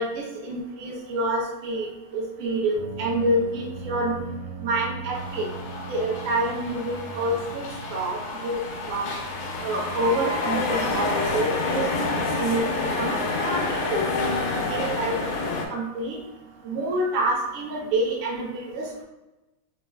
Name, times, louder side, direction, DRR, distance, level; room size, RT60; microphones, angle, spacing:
voice 1, 0.0-1.9 2.1-4.2 4.6-5.5 5.9-8.6 8.9-9.1 9.6-14.1 14.7-16.2 16.6-19.0, right 1 dB, 50° right, -3 dB, 1.0 m, -27 dB
sound 1, 2.7-14.7, right 5 dB, 90° right, 1.7 m, -41 dB
sound 2, 5.1-15.7, left 3 dB, 80° left, 1.6 m, -28 dB
4.0 x 3.9 x 2.2 m, 1.0 s
omnidirectional pair, 2.3 m